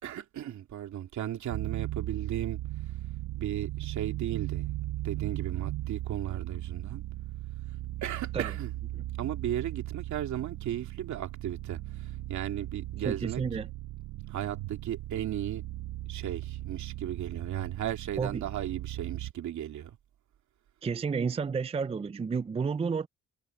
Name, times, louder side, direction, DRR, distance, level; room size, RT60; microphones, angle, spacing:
voice 1, 0.0-2.6 3.4-4.8 5.0-7.0 8.0-8.7 9.2-13.4 14.3-15.6 16.1-20.0, right 11 dB, 70° right, 2.5 m, -35 dB
sound 1, 1.5-19.3, right 15 dB, 90° right, 0.9 m, -37 dB
voice 2, 13.0-13.7 18.2-18.4 20.8-23.1, right 5 dB, 20° right, 0.5 m, -31 dB
cardioid pair, 90°, 30 cm